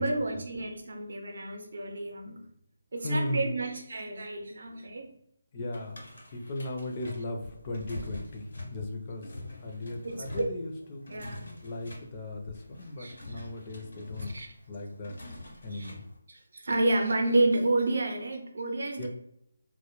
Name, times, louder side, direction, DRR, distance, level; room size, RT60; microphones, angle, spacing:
voice 1, 0.0-2.5 2.9-5.1 10.0-10.5 11.1-11.4 13.0-13.5 14.3-14.5 15.7-15.9 16.3-19.1, right 2 dB, 70° right, 0.5 m, -30 dB
voice 2, 3.0-3.5 5.5-8.4 8.7-11.0 11.6-14.3 14.7-15.1 15.6-16.0 19.0-19.1, left 1 dB, 30° left, 0.4 m, -36 dB
sound 1, 5.7-16.2, left 2 dB, 75° left, 1.0 m, -45 dB
2.1 x 2.0 x 3.0 m
figure-of-eight pair, 165°, 0 cm